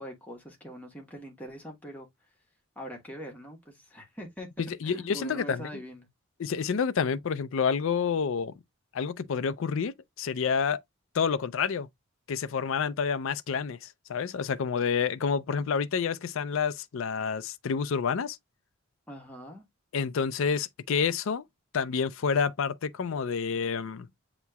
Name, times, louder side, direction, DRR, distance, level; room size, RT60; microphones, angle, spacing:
voice 1, 0.0-2.1 2.8-4.5 4.8-6.1 19.1-19.6, equal, 5° left, 1.2 m, -42 dB
voice 2, 4.6-5.7 6.4-8.6 8.9-10.8 11.1-11.9 12.3-18.4 19.9-21.4 21.7-24.1, left 6 dB, 70° left, 0.4 m, -29 dB
8.1 x 2.9 x 2.2 m
head